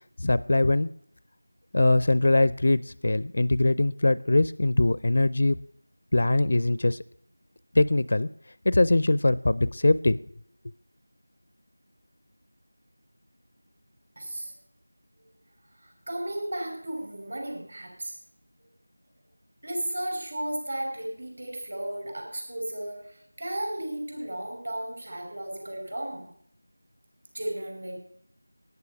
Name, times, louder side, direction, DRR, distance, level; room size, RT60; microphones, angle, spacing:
voice 1, 0.2-0.9 1.7-5.6 6.1-7.0 7.7-8.3 8.6-10.2, left 2 dB, 45° left, 18 dB, 0.5 m, -22 dB
voice 2, 14.2-14.5 15.8-18.1 19.6-26.3 27.3-28.0, right 1 dB, 50° right, 2 dB, 5.5 m, -34 dB
16.5 x 9.7 x 5.9 m, 0.64 s
figure-of-eight pair, 170°, 0 cm